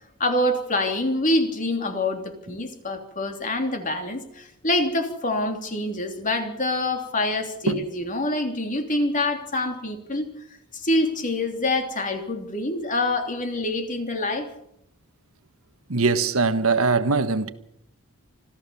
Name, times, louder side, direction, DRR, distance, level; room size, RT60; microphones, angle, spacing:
voice 1, 0.2-10.3 10.7-14.5, left 1 dB, 40° left, 3.2 m, -26 dB
voice 2, 15.9-17.5, right 4 dB, 75° right, 1.4 m, -21 dB
25.5 x 15.0 x 7.1 m
head